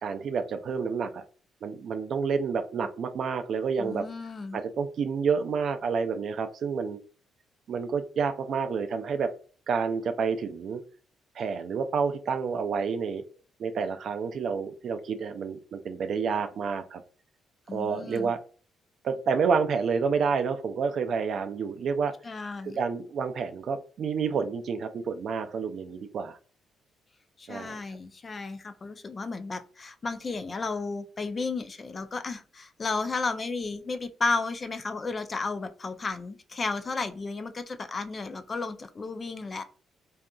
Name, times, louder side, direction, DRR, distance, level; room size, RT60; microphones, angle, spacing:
voice 1, 0.0-1.2 1.6-4.1 4.5-7.0 7.7-9.3 9.7-10.8 11.4-13.2 13.6-17.0 17.7-18.4 19.0-22.1 22.6-26.4 27.5-27.8, right 5 dB, 60° right, 8 dB, 0.3 m, -29 dB
voice 2, 3.8-4.6 17.7-18.3 22.2-22.8 27.4-39.6, left 3 dB, 35° left, 9 dB, 0.3 m, -33 dB
2.6 x 2.4 x 2.2 m, 0.40 s
cardioid pair, 90°, 0 cm